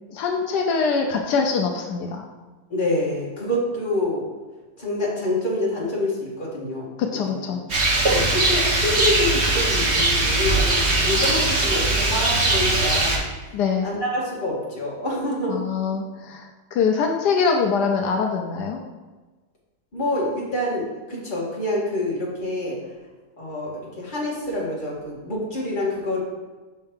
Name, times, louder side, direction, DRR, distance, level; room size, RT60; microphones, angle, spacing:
voice 1, 0.1-2.2 7.0-7.6 13.5-13.9 15.5-18.8, left 5 dB, 80° left, 2 dB, 1.3 m, -23 dB
voice 2, 2.7-4.2 4.8-7.4 8.1-13.2 13.8-15.6 19.9-22.8 23.4-26.2, left 1 dB, 30° left, -5 dB, 1.9 m, -27 dB
Rain, 7.7-13.2, right 2 dB, 45° right, 1.2 m, -20 dB
5.6 x 4.5 x 5.2 m, 1.2 s
omnidirectional pair, 1.7 m